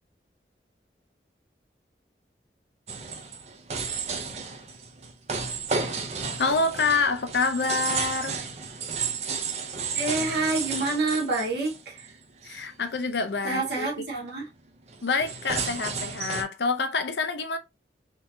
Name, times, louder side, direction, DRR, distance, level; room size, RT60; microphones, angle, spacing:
sound 1, 2.9-12.2 12.6-13.0 13.3-13.4 13.7-14.0 14.9-16.4, right 5 dB, 35° right, 0.6 m, -32 dB
voice 1, 6.4-8.4 12.4-13.9 15.0-17.6, left 4 dB, 75° left, 0.6 m, -27 dB
voice 2, 9.9-12.1 12.4-12.6 13.4-14.5, right 3 dB, 70° right, 1.5 m, -28 dB
3.7 x 2.8 x 2.7 m
head